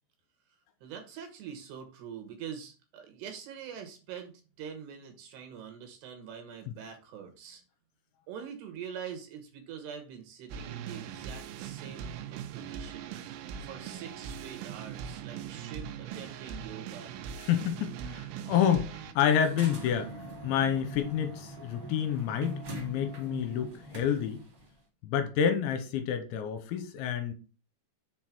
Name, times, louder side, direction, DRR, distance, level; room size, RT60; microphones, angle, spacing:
voice 1, 0.8-7.6 8.3-13.1 13.6-17.1, right 8 dB, 70° right, 2.9 m, -44 dB
sound 1, 10.5-19.1, right 8 dB, 90° right, 3.5 m, -41 dB
voice 2, 17.4-20.1 20.4-24.4 25.0-27.3, left 8 dB, 80° left, 3.0 m, -29 dB
sound 2, 19.4-24.7, equal, 40° right, 1.7 m, -42 dB
7.4 x 4.3 x 5.9 m
omnidirectional pair, 5.7 m